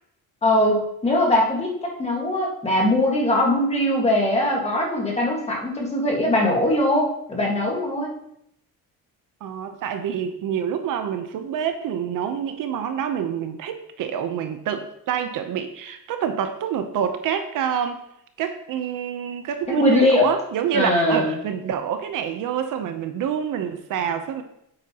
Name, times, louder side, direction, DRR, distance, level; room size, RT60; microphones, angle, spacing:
voice 1, 0.4-8.1 19.8-20.3 20.7-21.3, left 1 dB, 20° left, -1 dB, 1.7 m, -21 dB
voice 2, 9.4-18.0 18.4-24.4, right 8 dB, 60° right, 7 dB, 0.8 m, -27 dB
9.2 x 8.1 x 2.9 m, 0.75 s
cardioid pair, 170°, 35 cm